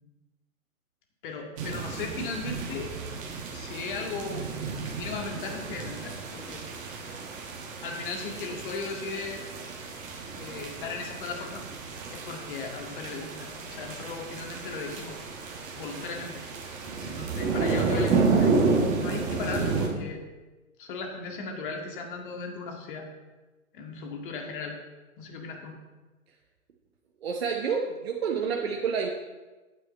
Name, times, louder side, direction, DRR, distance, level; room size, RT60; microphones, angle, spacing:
voice 1, 1.2-2.9 3.5-4.5 4.9-6.6 7.8-9.5 10.3-11.6 12.1-15.2 15.8-16.4 17.0-20.2 20.8-23.1 23.7-24.8 25.2-25.8, left 4 dB, 35° left, 2 dB, 1.9 m, -37 dB
sound 1, 1.6-19.9, right 4 dB, 20° right, 1.4 m, -31 dB
voice 2, 27.2-29.1, right 6 dB, 45° right, 0 dB, 1.1 m, -29 dB
10.5 x 9.2 x 4.4 m, 1.2 s
figure-of-eight pair, 125°, 42 cm